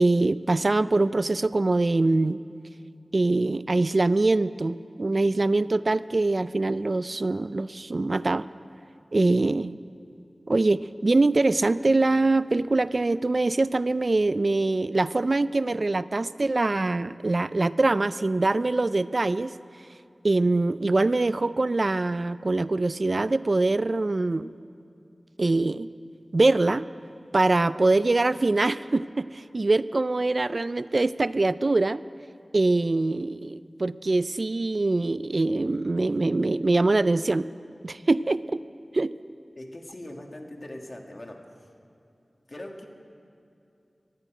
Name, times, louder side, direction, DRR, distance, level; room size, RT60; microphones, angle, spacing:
voice 1, 0.0-2.4 3.1-8.5 9.1-9.8 10.5-19.5 20.2-24.5 25.4-25.9 26.3-26.9 27.3-32.0 32.5-37.5 37.8-38.6 38.9-39.1, right 2 dB, 55° right, 16 dB, 0.3 m, -23 dB
voice 2, 39.6-41.4 42.5-42.9, left 1 dB, 45° left, 2 dB, 1.8 m, -41 dB
14.5 x 11.0 x 9.1 m, 2.7 s
wide cardioid pair, 55°, 0 cm